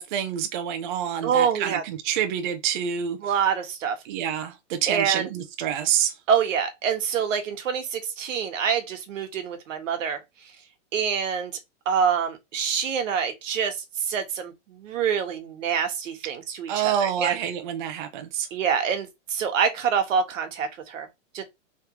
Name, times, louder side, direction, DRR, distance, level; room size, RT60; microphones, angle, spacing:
voice 1, 0.0-3.2 4.0-6.2 16.7-18.5, right 9 dB, 40° right, 0.6 m, -27 dB
voice 2, 1.2-1.8 3.2-4.0 4.9-5.3 6.3-10.2 10.9-11.5 11.8-17.4 18.5-21.1 21.3-21.4, right 7 dB, 85° right, 1.3 m, -26 dB
3.6 x 3.2 x 2.9 m
supercardioid pair, 160°, 37 cm